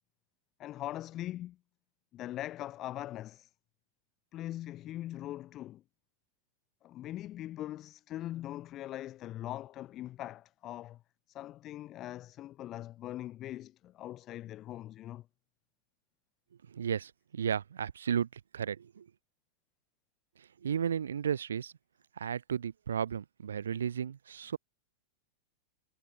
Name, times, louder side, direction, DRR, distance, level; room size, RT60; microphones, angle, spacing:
voice 1, 0.6-1.6 2.1-3.5 4.3-5.8 6.8-11.0 11.3-15.3, left 14 dB, 35° left, 7.8 m, -41 dB
voice 2, 16.7-19.1 20.4-21.7 22.2-24.6, right 8 dB, 65° right, 3.6 m, -34 dB
figure-of-eight pair, 90°, 0 cm